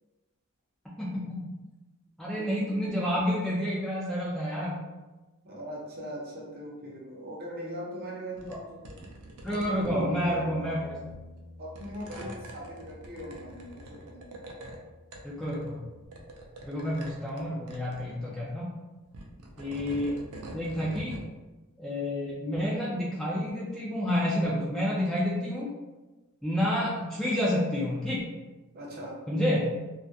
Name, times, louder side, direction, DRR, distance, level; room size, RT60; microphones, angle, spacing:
voice 1, 1.0-1.4 2.2-4.8 8.5-8.6 9.4-10.9 12.1-12.3 15.2-15.8 16.6-18.7 19.6-20.2 20.5-21.1 21.8-25.7 26.4-28.2 29.3-29.6, equal, ahead, -7 dB, 0.3 m, -29 dB
voice 2, 2.3-2.8 5.4-9.0 9.5-10.7 11.6-14.2 28.7-29.2, right 1 dB, 45° right, -4 dB, 0.6 m, -40 dB
sound 1, 8.4-8.6 8.8-10.3 11.1-11.4 11.8-14.8 15.1-15.8 16.1-17.4 17.7-18.0 19.0-21.3, right 1 dB, 90° right, 0.4 m, -45 dB
Bass guitar, 9.8-16.1, left 2 dB, 50° left, 0.7 m, -49 dB
2.3 x 2.1 x 2.6 m, 1.1 s
head